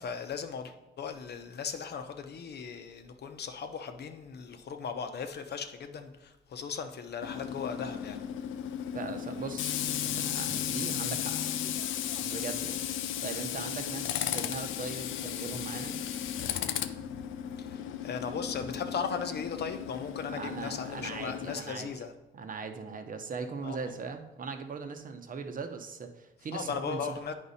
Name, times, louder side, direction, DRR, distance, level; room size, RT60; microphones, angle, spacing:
voice 1, 0.0-8.2 17.7-22.1 23.6-23.8 26.5-27.3, left 6 dB, 55° left, 7 dB, 0.8 m, -37 dB
Tools, 7.2-21.6, left 10 dB, 80° left, 0.5 m, -35 dB
voice 2, 8.9-11.4 12.2-12.9 13.2-16.0 20.3-22.0 22.3-27.2, right 5 dB, 45° right, 6 dB, 0.9 m, -39 dB
8.7 x 5.3 x 4.2 m, 0.97 s
cardioid pair, 90°, 20 cm